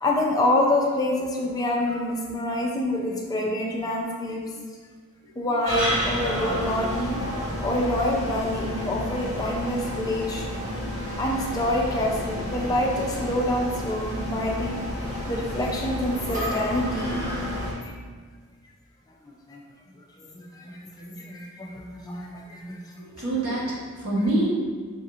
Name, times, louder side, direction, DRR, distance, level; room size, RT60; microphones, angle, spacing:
voice 1, 0.0-4.5 5.4-7.2 7.6-10.5 11.0-14.8 15.3-17.9 19.5-19.6 20.2-22.8, left 1 dB, 15° left, -1 dB, 0.4 m, -27 dB
sound 1, 5.6-17.7, equal, 35° right, 1.0 m, -30 dB
voice 2, 23.0-24.5, right 2 dB, 80° right, -5 dB, 1.1 m, -26 dB
5.4 x 2.8 x 2.4 m, 1.5 s
head